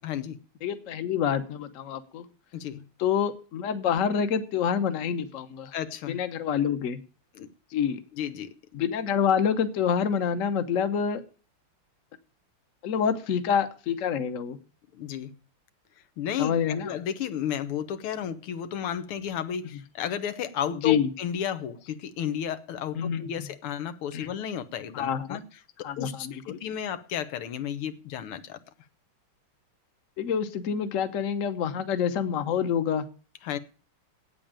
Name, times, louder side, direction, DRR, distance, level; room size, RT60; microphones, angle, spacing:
voice 1, 0.0-0.4 2.5-2.8 5.7-6.2 7.4-7.5 8.2-8.5 14.9-15.3 16.2-25.4 25.8-28.6 33.4-33.6, left 9 dB, 90° left, 1.9 m, -33 dB
voice 2, 0.6-2.3 3.0-5.7 6.1-7.0 7.7-8.0 8.7-11.2 12.8-14.6 16.4-16.9 20.8-21.1 23.0-23.5 24.1-24.3 24.9-25.4 25.8-26.6 30.2-33.0, left 7 dB, 45° left, 1.1 m, -27 dB
8.9 x 8.7 x 8.8 m
omnidirectional pair, 2.3 m